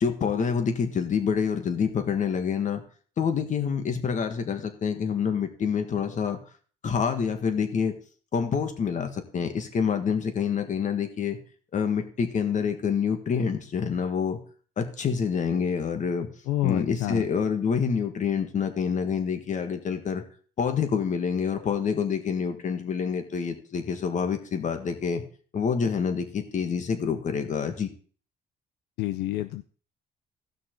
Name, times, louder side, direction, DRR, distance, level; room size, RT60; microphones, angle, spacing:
voice 1, 0.0-2.8 3.2-6.4 6.8-7.9 8.3-11.4 11.7-14.4 14.8-16.3 16.6-20.2 20.6-25.2 25.5-27.9, left 6 dB, 45° left, 7 dB, 1.6 m, -27 dB
voice 2, 16.5-17.2 29.0-29.6, left 16 dB, 85° left, 11 dB, 0.5 m, -28 dB
15.5 x 6.1 x 3.8 m, 0.42 s
cardioid pair, 100°, 17 cm